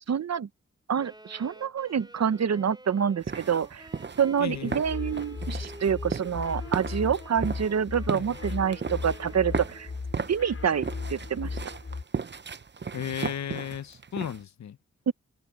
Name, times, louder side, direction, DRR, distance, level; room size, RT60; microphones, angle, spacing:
voice 1, 0.1-0.5 0.9-3.9 4.2-9.9 10.3-11.6 15.1-15.2, right 7 dB, 60° right, 1.0 m, -27 dB
Wind instrument woodwind instrument, 1.0-10.0, right 1 dB, 15° right, 3.7 m, -49 dB
sound 1, 3.2-14.4, right 5 dB, 40° right, 0.9 m, -36 dB
voice 2, 4.4-4.8 8.1-8.4 12.9-14.8, left 9 dB, 70° left, 0.9 m, -35 dB
sound 2, 4.7-12.0, left 4 dB, 50° left, 6.7 m, -37 dB
supercardioid pair, 40°, 29 cm